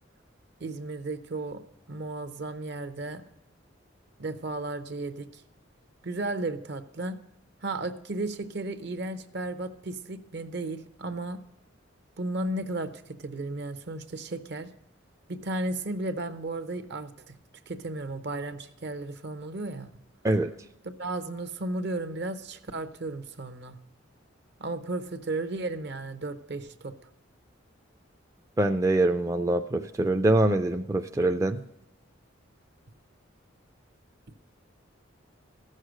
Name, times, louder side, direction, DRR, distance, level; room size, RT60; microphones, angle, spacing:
voice 1, 0.6-1.6 1.9-3.2 4.2-5.4 6.0-7.2 7.6-11.4 12.2-14.7 15.3-17.3 17.7-19.9 20.8-23.8 24.6-26.9, right 2 dB, 60° right, 11 dB, 0.8 m, -34 dB
voice 2, 28.6-31.6, right 2 dB, 15° right, 6 dB, 0.3 m, -24 dB
14.5 x 6.5 x 6.3 m, 0.83 s
head